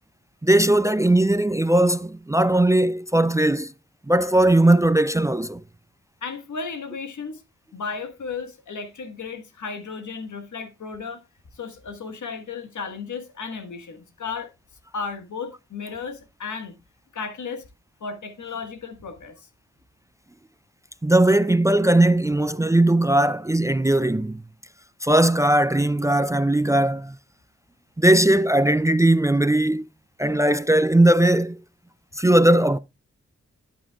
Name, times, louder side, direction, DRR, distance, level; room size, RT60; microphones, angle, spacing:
voice 1, 0.4-3.7 4.1-5.6 21.0-24.4 25.0-27.2 28.0-29.8 30.2-31.6 32.2-32.8, right 1 dB, 10° right, 0.4 m, -19 dB
voice 2, 6.2-7.4 7.7-11.2 11.5-14.5 14.9-16.7 17.1-17.7 18.0-19.5, left 5 dB, 85° left, 1.5 m, -34 dB
11.0 x 8.5 x 2.3 m
cardioid pair, 65°, 29 cm